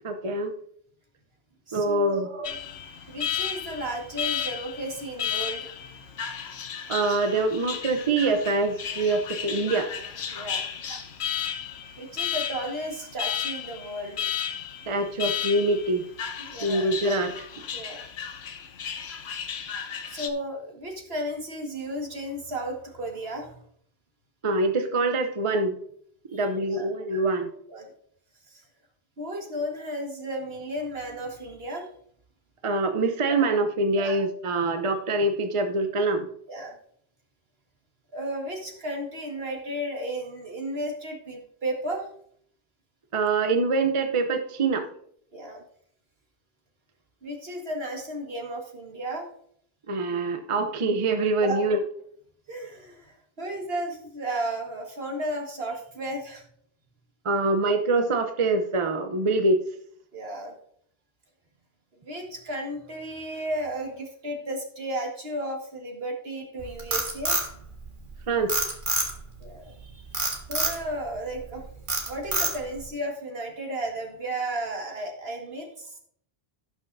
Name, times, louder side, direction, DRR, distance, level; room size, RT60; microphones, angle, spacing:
voice 1, 0.0-0.5 1.7-2.5 6.9-9.9 10.9-11.0 14.9-16.0 16.6-17.3 24.4-25.8 26.3-27.5 32.6-36.3 43.1-44.9 49.9-51.8 57.2-59.6 68.3-68.6, right 2 dB, 35° right, 6 dB, 0.7 m, -25 dB
voice 2, 1.7-2.3 3.1-5.8 10.3-10.6 12.0-14.3 16.4-16.9 17.7-18.0 20.0-23.6 26.3-26.5 26.7-26.9 27.7-27.9 28.5-28.6 29.2-31.9 34.0-34.2 36.5-36.8 38.1-42.1 45.3-45.6 47.2-49.3 51.4-51.6 52.5-56.4 60.1-60.5 62.0-67.4 69.4-70.2 70.5-71.7 72.1-76.0, right 1 dB, 70° right, 2 dB, 1.9 m, -34 dB
Alarm, 2.4-20.3, left 8 dB, 80° left, 1.0 m, -34 dB
Frog, 66.6-68.1 68.5-69.4 70.1-70.8 71.3-71.5 71.9-72.8, right 2 dB, 50° right, 1.9 m, -26 dB
17.5 x 5.9 x 2.6 m, 0.64 s
omnidirectional pair, 1.1 m